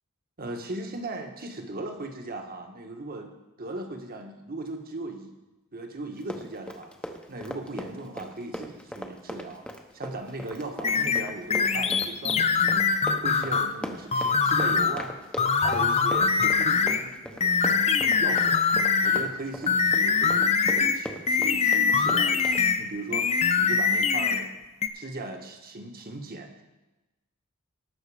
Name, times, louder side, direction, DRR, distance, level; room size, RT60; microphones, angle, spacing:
voice 1, 0.4-5.3 5.7-6.9 7.3-12.9 13.2-15.1 15.6-17.8 18.2-18.7 19.0-24.6 24.9-26.6, right 2 dB, 45° right, 4 dB, 1.4 m, -38 dB
Run, 6.1-22.6, equal, 5° left, 0.9 m, -39 dB
sound 1, 10.8-13.7 14.1-15.0 15.4-17.0 17.4-19.3 19.7-22.8 23.1-24.5 24.8-24.9, left 5 dB, 30° left, 0.5 m, -23 dB
18.5 x 6.4 x 4.9 m, 1.1 s
head